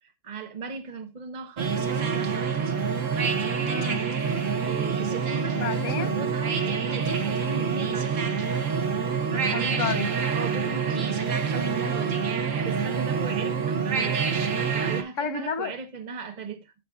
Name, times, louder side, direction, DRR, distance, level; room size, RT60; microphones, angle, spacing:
voice 1, 0.0-2.3 4.6-8.4 10.3-12.2 12.6-14.3 14.7-16.7, right 4 dB, 40° right, 1.1 m, -37 dB
sound 1, 1.6-15.0, right 6 dB, 90° right, 1.4 m, -26 dB
voice 2, 3.6-4.0 5.5-6.1 9.3-10.1 15.2-15.7, left 6 dB, 90° left, 1.3 m, -31 dB
15.0 x 5.3 x 2.4 m
omnidirectional pair, 1.3 m